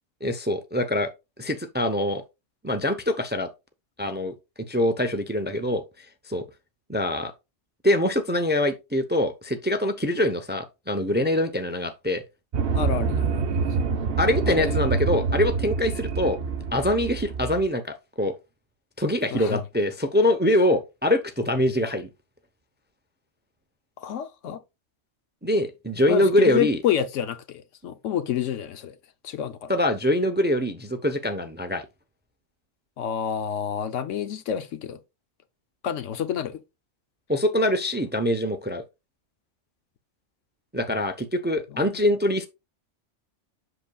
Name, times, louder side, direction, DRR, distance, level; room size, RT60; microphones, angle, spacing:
voice 1, 0.2-1.1 1.4-2.2 2.6-3.5 4.0-5.8 6.3-6.4 6.9-7.3 7.8-12.2 14.2-16.4 16.7-18.3 19.0-22.1 25.4-26.8 29.7-31.8 37.3-38.8 40.7-42.5, left 1 dB, 15° right, 0.4 m, -24 dB
sound 1, 12.5-17.6, right 5 dB, 55° right, 0.9 m, -26 dB
voice 2, 12.7-13.5 14.5-14.8 19.3-19.6 24.0-24.6 26.1-28.9 29.2-29.7 33.0-35.0 35.8-36.6 41.7-42.0, left 9 dB, 85° left, 1.1 m, -29 dB
7.8 x 6.6 x 2.3 m
omnidirectional pair, 1.2 m